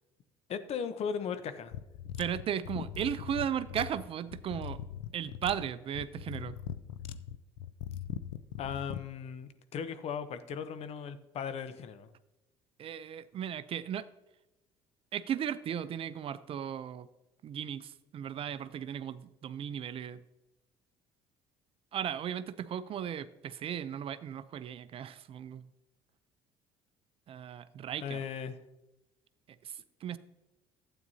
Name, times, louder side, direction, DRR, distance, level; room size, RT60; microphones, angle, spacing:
voice 1, 0.5-1.7 8.6-12.1 28.0-28.5, left 7 dB, 55° left, 11 dB, 0.8 m, -37 dB
sound 1, 1.7-9.1, left 10 dB, 80° left, 0.4 m, -41 dB
voice 2, 2.2-4.8 5.1-6.6 12.8-14.1 15.1-17.1 17.4-20.2 21.9-25.7 27.3-28.2 29.6-30.2, right 9 dB, 45° right, 15 dB, 0.5 m, -36 dB
12.0 x 8.8 x 2.8 m, 0.97 s
hypercardioid pair, 65°, 13 cm